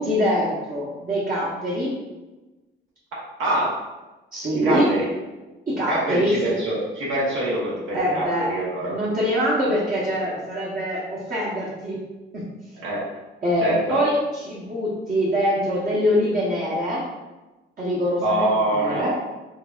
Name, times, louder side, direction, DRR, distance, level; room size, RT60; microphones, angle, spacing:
voice 1, 0.0-2.0 4.3-4.9 5.7-6.5 7.9-8.5 8.8-12.0 12.3-12.5 13.4-17.0 17.8-19.2, equal, 45° right, -8 dB, 1.0 m, -24 dB
voice 2, 4.6-5.1 5.9-8.9 12.7-13.0 13.6-14.0 18.2-19.0, right 1 dB, 80° right, -7 dB, 1.2 m, -24 dB
4.5 x 2.8 x 2.5 m, 1.1 s
cardioid pair, 90°, 20 cm